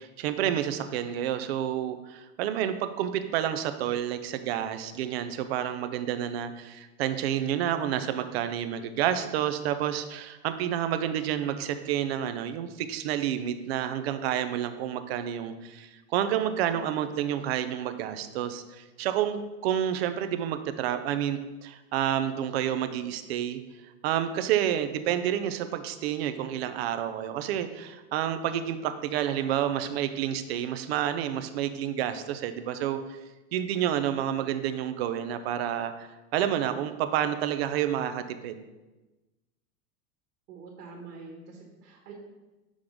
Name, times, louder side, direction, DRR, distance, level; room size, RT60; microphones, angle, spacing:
voice 1, 0.0-23.6 24.0-33.0 33.5-38.6, right 10 dB, 45° right, 10 dB, 0.4 m, -29 dB
voice 2, 40.5-42.1, right 4 dB, 85° right, 0 dB, 1.4 m, -45 dB
6.2 x 3.6 x 4.9 m, 1.1 s
supercardioid pair, 150°, 46 cm